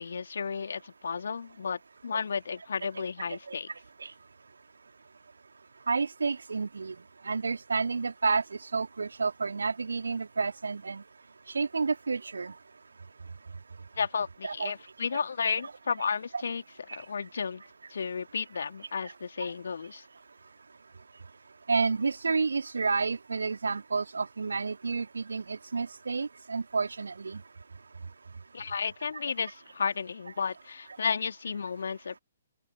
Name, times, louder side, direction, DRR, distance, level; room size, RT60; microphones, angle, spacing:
voice 1, 0.0-3.7 14.0-16.6 16.9-17.6 17.9-20.0 28.5-32.2, left 6 dB, 60° left, 2.9 m, -33 dB
voice 2, 3.2-3.6 4.0-4.1 5.9-6.9 7.2-11.0 11.5-12.5 14.4-14.7 15.1-15.2 16.3-16.4 19.4-19.5 21.7-27.4, right 4 dB, 65° right, 2.5 m, -30 dB
open air
figure-of-eight pair, 125°, 0 cm